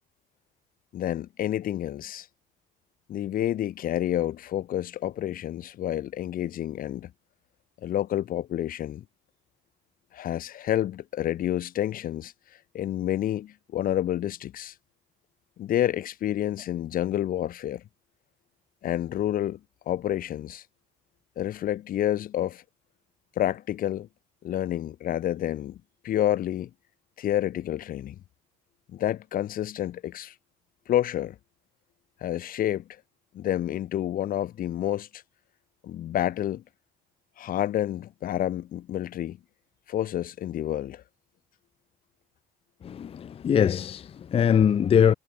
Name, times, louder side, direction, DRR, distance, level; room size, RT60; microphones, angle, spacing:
voice 1, 0.9-2.3 3.1-7.1 7.8-9.0 10.1-12.3 12.7-14.7 15.6-17.8 18.8-19.6 19.9-20.6 21.4-22.6 23.4-24.1 24.4-26.7 27.2-28.2 28.9-30.3 30.9-31.4 32.2-32.9 33.3-35.2 35.8-36.6 37.4-39.4 39.9-41.0, left 12 dB, 55° left, 1.0 m, -29 dB
voice 2, 42.8-45.1, left 8 dB, 35° left, 0.5 m, -22 dB
cardioid pair, 110°, 17 cm